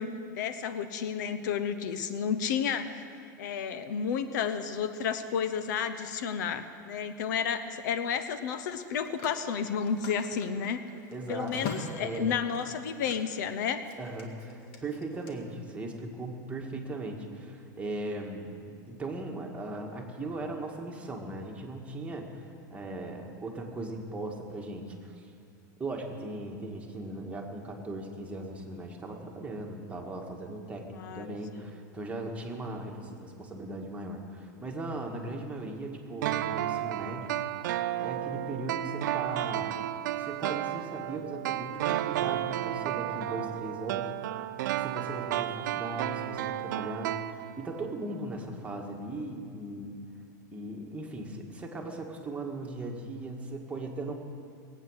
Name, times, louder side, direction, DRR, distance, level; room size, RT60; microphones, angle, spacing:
voice 1, 0.0-3.1 3.4-10.8 11.3-13.8 30.9-31.4, left 7 dB, 75° left, 11 dB, 0.9 m, -31 dB
Telephone, 8.7-13.5 13.8-15.3, left 5 dB, 55° left, 1.9 m, -43 dB
voice 2, 11.1-11.7 12.0-12.3 14.0-25.3 25.8-37.3 38.0-39.9 40.2-44.4 44.8-50.0 50.5-54.1, right 2 dB, 15° right, 0 dB, 1.9 m, -38 dB
sound 1, 36.2-47.9 48.1-48.2, right 13 dB, 75° right, 0.5 m, -32 dB
20.5 x 8.6 x 6.6 m, 2.4 s
supercardioid pair, 120°, 10 cm